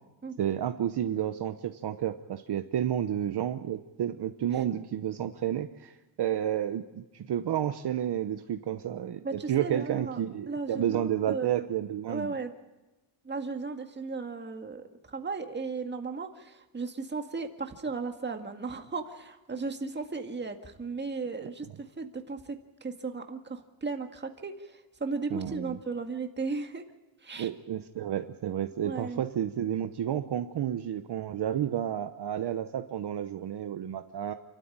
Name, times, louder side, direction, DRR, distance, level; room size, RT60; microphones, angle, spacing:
voice 1, 0.4-12.3 25.3-25.8 27.3-34.3, right 10 dB, 55° right, 8 dB, 1.0 m, -31 dB
voice 2, 9.2-10.2 10.5-11.7 12.1-12.5 13.2-22.6 22.8-26.8 27.2-27.5 28.8-29.3, right 4 dB, 20° right, 5 dB, 1.9 m, -36 dB
28.5 x 13.0 x 8.8 m, 1.1 s
cardioid pair, 145°, 48 cm